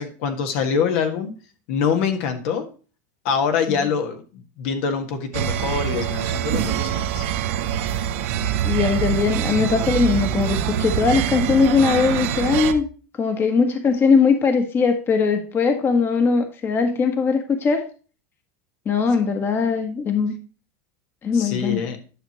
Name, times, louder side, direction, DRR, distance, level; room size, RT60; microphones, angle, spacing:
voice 1, 0.0-1.3 1.7-2.7 3.2-7.2 21.3-22.0, left 6 dB, 70° left, 5 dB, 1.7 m, -24 dB
sound 1, 5.3-12.7, right 10 dB, 70° right, 0.9 m, -24 dB
voice 2, 8.6-12.8 13.2-17.9 18.8-20.3 21.2-21.8, left 5 dB, 30° left, 6 dB, 1.3 m, -20 dB
10.5 x 6.0 x 3.1 m, 0.36 s
supercardioid pair, 130°, 7 cm